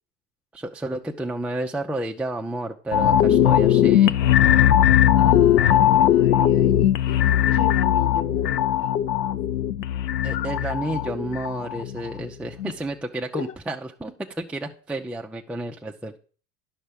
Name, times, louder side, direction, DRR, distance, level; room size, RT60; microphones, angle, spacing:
voice 1, 0.5-4.2 10.2-16.2, right 1 dB, 5° right, 1 dB, 0.5 m, -31 dB
sound 1, 2.9-12.2 12.6-12.7, left 11 dB, 85° left, 0.7 m, -19 dB
voice 2, 5.2-8.8 13.3-13.5, left 8 dB, 30° left, 10 dB, 1.3 m, -35 dB
10.5 x 5.8 x 5.1 m, 0.40 s
hypercardioid pair, 80°, 48 cm